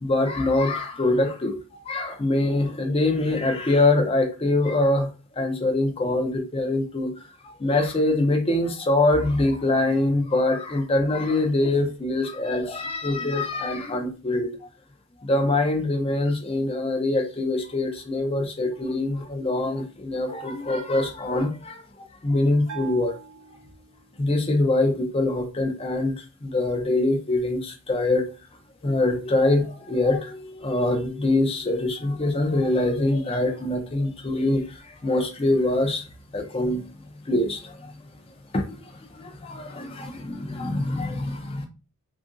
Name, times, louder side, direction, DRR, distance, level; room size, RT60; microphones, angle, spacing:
voice 1, 0.0-5.1 5.4-7.1 7.4-14.7 15.2-23.1 24.2-28.3 28.8-36.0 36.3-36.8 37.3-37.9 38.5-41.6, left 2 dB, 25° left, 0.4 m, -24 dB
Bell, 22.7-24.3, right 8 dB, 85° right, 0.7 m, -42 dB
2.7 x 2.5 x 2.5 m
head